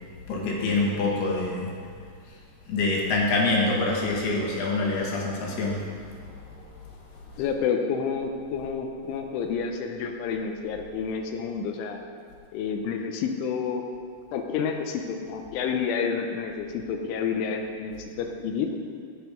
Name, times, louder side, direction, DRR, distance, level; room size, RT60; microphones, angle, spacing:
voice 1, 0.3-1.7 2.7-5.8, left 3 dB, 65° left, -2 dB, 3.1 m, -25 dB
voice 2, 7.4-12.0 12.5-13.9 14.3-18.7, left 6 dB, 85° left, 4 dB, 3.2 m, -29 dB
10.5 x 9.0 x 5.2 m, 2.1 s
omnidirectional pair, 5.6 m